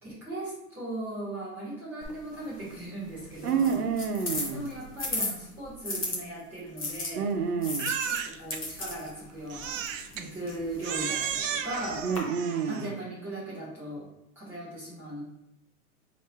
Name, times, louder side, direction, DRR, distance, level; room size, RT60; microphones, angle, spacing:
voice 1, 0.0-3.9 4.5-7.3 8.1-9.8 10.1-12.1 12.7-14.1 14.4-15.2, right 1 dB, 5° right, -10 dB, 0.8 m, -38 dB
sound 1, 2.0-6.2 6.8-12.2, left 2 dB, 25° left, 0.4 m, -37 dB
voice 2, 3.4-4.7 7.1-8.0 12.0-12.9, right 6 dB, 90° right, 5 dB, 0.9 m, -28 dB
Crying sobbing, 7.8-8.6 9.5-10.3 10.8-12.9, right 8 dB, 60° right, 0.5 m, -33 dB
4.6 x 2.8 x 3.3 m, 0.85 s
hypercardioid pair, 175°, 44 cm